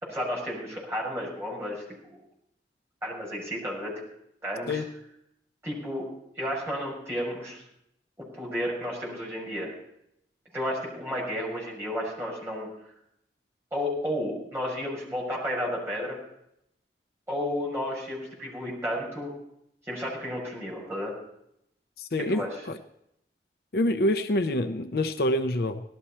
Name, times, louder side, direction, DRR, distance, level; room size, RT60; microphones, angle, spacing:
voice 1, 0.0-2.2 3.0-3.9 4.4-4.8 5.6-6.1 6.4-7.6 8.2-9.7 10.5-12.7 13.7-16.2 17.3-19.3 19.9-21.1 22.3-22.5, equal, 15° right, -4 dB, 5.7 m, -32 dB
voice 2, 22.0-22.4 23.7-25.8, left 1 dB, 60° left, 7 dB, 0.7 m, -26 dB
17.5 x 13.0 x 4.3 m, 0.76 s
head